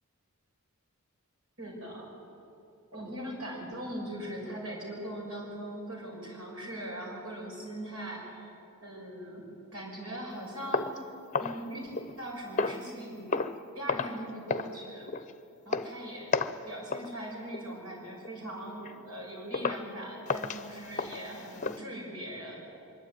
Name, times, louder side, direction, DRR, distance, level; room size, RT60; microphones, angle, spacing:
voice 1, 1.6-2.1 2.9-8.5 8.8-11.0 11.4-13.4 13.7-15.1 15.6-16.4 16.6-22.6, right 1 dB, 80° right, -2 dB, 6.5 m, -40 dB
sound 1, 10.7-12.2 12.6-12.9 13.3-13.6 13.9-14.2 14.5-14.8 15.1-15.3 15.7-15.9 16.3-16.6 16.9-17.1 17.5-17.8 18.2-18.4 18.9-19.0 19.5-19.9 20.3-21.8, left 4 dB, 35° left, 0.7 m, -32 dB
23.5 x 12.5 x 9.4 m, 2.8 s
head